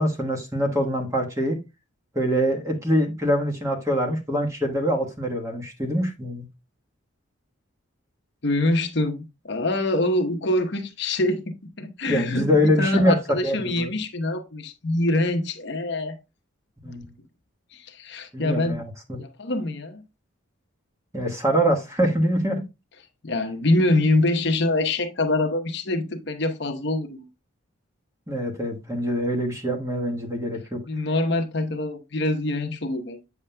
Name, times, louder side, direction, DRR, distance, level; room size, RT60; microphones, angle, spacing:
voice 1, 0.0-1.6 2.1-6.4 12.1-13.2 13.4-13.9 16.8-17.1 18.3-19.2 21.1-22.6 28.3-30.8, equal, 15° right, 1.3 m, -24 dB
voice 2, 8.4-16.2 17.7-18.8 19.2-20.0 23.2-27.3 30.9-33.2, left 2 dB, 55° left, 0.9 m, -25 dB
8.4 x 7.2 x 2.2 m
head